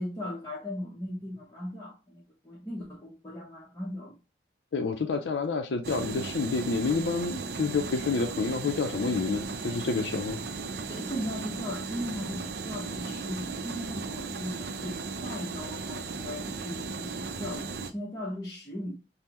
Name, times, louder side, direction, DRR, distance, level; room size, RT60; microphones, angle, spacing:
voice 1, 0.0-4.2 10.8-18.9, left 1 dB, 20° left, 0.7 m, -38 dB
voice 2, 4.7-10.4, left 4 dB, 80° left, 0.4 m, -29 dB
sound 1, 5.8-17.9, right 4 dB, 65° right, 0.5 m, -36 dB
5.3 x 2.0 x 2.9 m
head